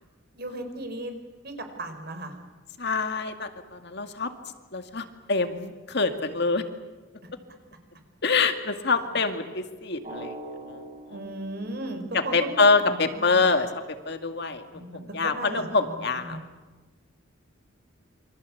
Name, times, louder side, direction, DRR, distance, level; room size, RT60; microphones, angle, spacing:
voice 1, 0.3-1.1 1.4-2.3 9.1-9.2 11.1-13.5 14.7-14.9 15.2-16.4, right 1 dB, 50° right, 7 dB, 4.7 m, -36 dB
voice 2, 2.8-4.3 4.7-6.6 8.2-10.3 10.7-10.8 12.1-13.7 14.1-16.4, left 4 dB, 55° left, 7 dB, 2.1 m, -25 dB
Drum, 10.0-12.6, right 1 dB, 35° right, 5.1 m, -42 dB
28.0 x 24.5 x 8.4 m, 1.2 s
head